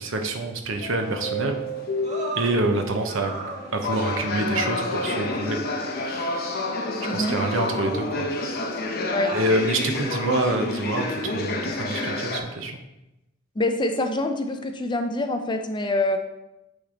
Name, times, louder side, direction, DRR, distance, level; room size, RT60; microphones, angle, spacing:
voice 1, 0.0-1.6 2.4-3.3 3.7-6.4 7.1-8.3 9.3-12.8, right 2 dB, 70° right, 5 dB, 0.8 m, -26 dB
sound 1, 0.8-12.4, left 2 dB, 50° left, 0.8 m, -29 dB
sound 2, 2.0-2.6 3.1-4.1 4.8-5.0 6.1-6.2 7.5-8.4 9.2-9.6 10.4-10.9 11.9-12.0, right 2 dB, 35° right, 1.5 m, -37 dB
voice 2, 7.0-7.4 9.1-9.4 13.6-16.2, left 1 dB, 20° left, 6 dB, 0.5 m, -25 dB
8.7 x 3.3 x 3.8 m, 0.91 s
head